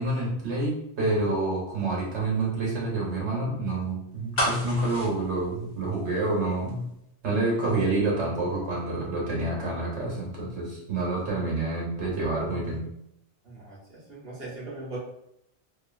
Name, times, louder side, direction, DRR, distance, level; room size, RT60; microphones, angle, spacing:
voice 1, 0.0-6.8 7.2-12.8, right 2 dB, 80° right, -4 dB, 1.3 m, -28 dB
sound 1, 4.3-6.4 6.7-6.8, equal, 65° left, 1.2 m, -30 dB
voice 2, 13.4-15.0, right 2 dB, 60° right, -6 dB, 1.1 m, -40 dB
2.9 x 2.3 x 2.4 m, 0.79 s
omnidirectional pair, 1.2 m